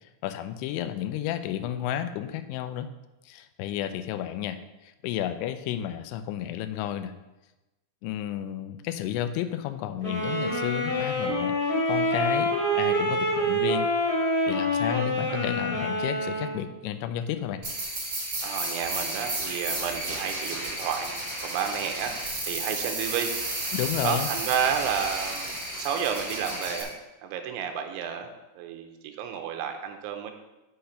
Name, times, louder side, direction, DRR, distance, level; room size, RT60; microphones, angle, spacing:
voice 1, 0.2-2.9 3.3-7.1 8.0-13.9 14.5-17.6 23.7-24.3, left 11 dB, 85° left, 10 dB, 2.8 m, -32 dB
sound 1, 10.0-16.6, equal, 20° left, 3.3 m, -26 dB
sound 2, 17.6-26.8, right 1 dB, 30° right, 2.4 m, -32 dB
voice 2, 18.4-23.3 24.0-25.5 25.8-26.9 27.2-28.3 28.5-30.3, right 8 dB, 80° right, 5 dB, 3.2 m, -31 dB
6.6 x 6.5 x 5.6 m, 1.0 s
omnidirectional pair, 5.4 m